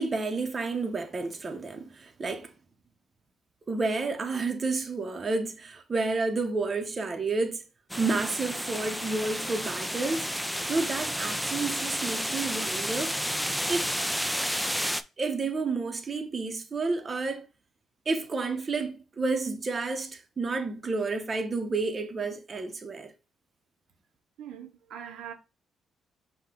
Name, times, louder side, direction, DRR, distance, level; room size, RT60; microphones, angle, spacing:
voice 1, 0.0-2.5 3.7-7.6 8.0-10.3 10.7-13.1 13.7-13.9 15.2-17.5 18.1-23.1, right 3 dB, 35° right, 0.7 m, -30 dB
sound 1, 7.9-15.0, equal, ahead, 0.3 m, -31 dB
voice 2, 24.4-25.3, right 9 dB, 80° right, 0.7 m, -42 dB
5.6 x 2.2 x 3.7 m
cardioid pair, 90°, 0 cm